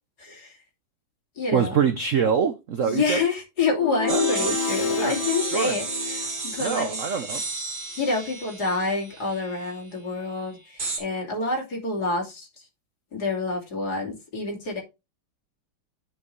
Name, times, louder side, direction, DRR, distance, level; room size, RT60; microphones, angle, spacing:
voice 1, 0.2-0.6 1.4-1.7 2.8-5.9 6.1-7.0 8.0-12.5 13.1-14.8, left 3 dB, 50° left, 3.0 m, -28 dB
voice 2, 1.5-3.2 4.1-4.6 4.9-5.8 6.6-7.4, right 6 dB, 75° right, 0.7 m, -25 dB
sound 1, 3.7-7.0, left 5 dB, 85° left, 2.3 m, -29 dB
sound 2, 4.1-9.8 10.8-11.0, right 3 dB, 45° right, 2.8 m, -33 dB
9.7 x 5.7 x 3.2 m
omnidirectional pair, 2.3 m